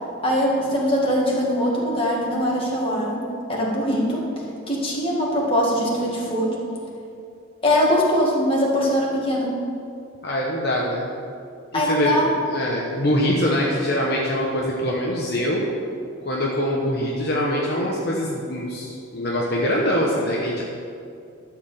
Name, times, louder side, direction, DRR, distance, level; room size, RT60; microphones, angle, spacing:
voice 1, 0.2-3.2 3.5-4.2 4.7-6.5 7.6-9.5 11.7-12.3, equal, 25° left, -4 dB, 2.0 m, -21 dB
voice 2, 10.2-11.1 11.7-15.7 16.2-20.6, equal, 50° left, -3 dB, 1.1 m, -23 dB
12.5 x 5.0 x 7.7 m, 2.5 s
head